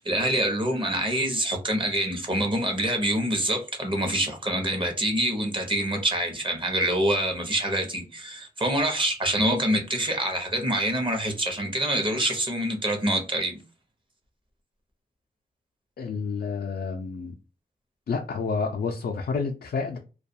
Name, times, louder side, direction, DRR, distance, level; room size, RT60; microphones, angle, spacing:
voice 1, 0.0-13.6, right 1 dB, 30° right, 0.8 m, -26 dB
voice 2, 16.0-17.3 18.1-20.0, left 4 dB, 85° left, 0.4 m, -29 dB
2.3 x 2.3 x 2.6 m
wide cardioid pair, 90°, 16 cm